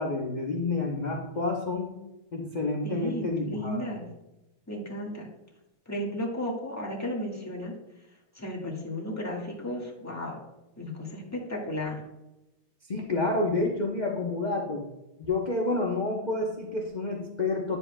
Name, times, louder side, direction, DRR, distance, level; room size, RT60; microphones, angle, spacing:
voice 1, 0.0-1.9 2.3-3.9 12.9-14.8 15.3-17.8, left 2 dB, 60° left, -1 dB, 0.4 m, -29 dB
voice 2, 2.8-4.1 4.7-5.3 5.8-7.7 8.3-10.4 10.8-12.0, left 1 dB, 10° left, -3 dB, 1.3 m, -34 dB
10.5 x 7.2 x 2.2 m, 0.95 s
omnidirectional pair, 2.4 m